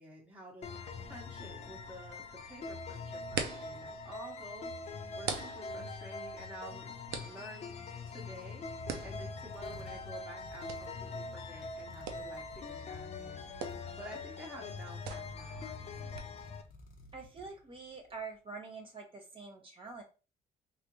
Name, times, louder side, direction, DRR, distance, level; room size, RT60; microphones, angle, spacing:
voice 1, 0.0-4.7 5.2-6.9 7.2-7.7 8.1-8.6 9.0-13.5 13.9-16.3, right 1 dB, 10° right, -2 dB, 0.9 m, -50 dB
sound 1, 0.6-16.6, left 4 dB, 40° left, 0.5 m, -43 dB
sound 2, 0.7-16.2, right 6 dB, 75° right, 0.6 m, -46 dB
sound 3, 8.4-18.2, left 1 dB, 55° left, 0.8 m, -56 dB
voice 2, 17.1-20.0, right 4 dB, 30° right, 2 dB, 1.0 m, -46 dB
3.4 x 2.4 x 2.9 m, 0.33 s
cardioid pair, 110°, 17 cm